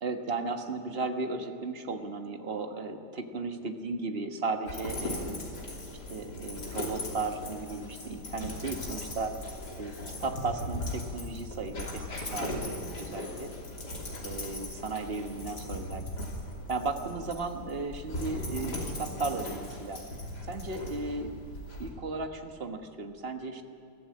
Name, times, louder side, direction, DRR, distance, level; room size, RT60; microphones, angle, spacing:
voice 1, 0.0-5.4 6.1-9.3 9.7-13.5 14.2-16.3 16.7-20.0 20.4-21.3 21.8-23.6, right 3 dB, 30° right, 5 dB, 1.3 m, -35 dB
Dog, 4.7-21.9, left 1 dB, 50° left, 3.6 m, -38 dB
22.5 x 14.5 x 8.5 m, 2.6 s
omnidirectional pair, 2.3 m